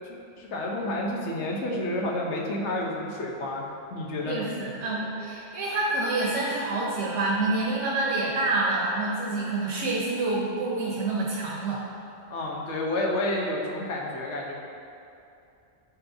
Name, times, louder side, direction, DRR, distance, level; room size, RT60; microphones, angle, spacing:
voice 1, 0.4-4.5 12.3-14.5, left 1 dB, 75° left, -1 dB, 1.1 m, -30 dB
voice 2, 4.2-11.8, right 2 dB, 85° right, -4 dB, 1.1 m, -27 dB
9.6 x 4.2 x 2.7 m, 2.7 s
omnidirectional pair, 1.2 m